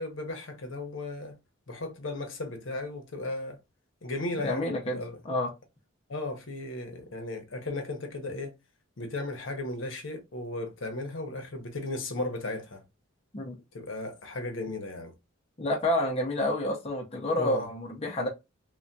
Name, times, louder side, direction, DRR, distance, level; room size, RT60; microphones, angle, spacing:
voice 1, 0.0-1.4 1.7-3.6 4.0-5.2 6.1-8.5 9.0-12.8 13.7-15.1 17.4-17.7, left 2 dB, 65° left, 0.7 m, -35 dB
voice 2, 4.4-5.0 5.2-5.5 13.3-13.5 15.6-18.3, left 1 dB, 30° left, 0.5 m, -29 dB
3.3 x 2.2 x 2.6 m
head